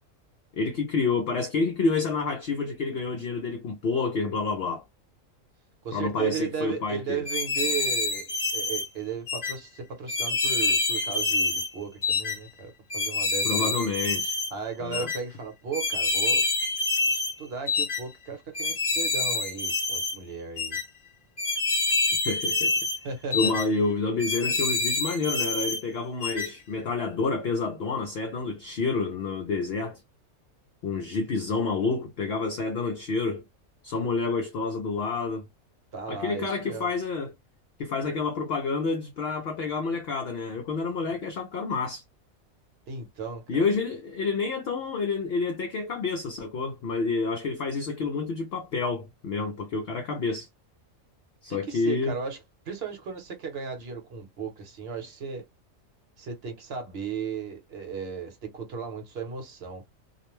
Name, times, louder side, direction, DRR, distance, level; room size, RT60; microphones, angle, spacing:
voice 1, 0.5-4.8 5.9-7.2 13.4-14.4 14.8-15.1 22.2-22.7 23.3-30.0 30.8-33.4 33.8-35.5 36.1-37.3 37.8-42.0 43.5-50.5 51.4-52.2, left 4 dB, 65° left, 0.6 m, -29 dB
voice 2, 5.8-8.3 8.5-13.7 14.5-16.5 17.1-20.8 23.0-23.6 35.9-36.9 42.9-43.6 51.5-52.4 52.7-55.4 56.2-59.8, right 6 dB, 55° right, 1.0 m, -35 dB
sound 1, 7.3-8.9 9.3-9.5 10.1-11.7 12.0-12.4 12.9-14.5 14.9-15.2 15.7-17.3 17.7-18.0 18.6-20.2 20.6-20.8 21.4-23.0 23.3-23.7 24.2-25.8 26.2-26.5, left 3 dB, 40° left, 1.1 m, -27 dB
2.4 x 2.1 x 2.9 m
omnidirectional pair, 1.4 m